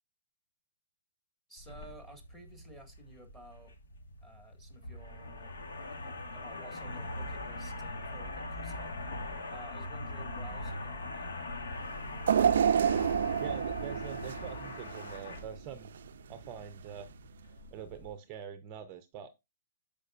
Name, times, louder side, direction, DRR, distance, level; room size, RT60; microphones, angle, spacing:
voice 1, 1.5-3.7 4.2-9.0 9.5-11.4, right 1 dB, 5° left, 1.9 m, -53 dB
sound 1, 1.6-18.1, left 2 dB, 90° left, 2.4 m, -42 dB
sound 2, 12.3-15.4 15.8-16.0 17.0-17.1, right 8 dB, 65° right, 0.3 m, -28 dB
voice 2, 13.4-15.9 16.3-17.1 17.7-19.4, right 9 dB, 25° right, 0.6 m, -44 dB
13.5 x 5.0 x 2.4 m
hypercardioid pair, 160°, 0 cm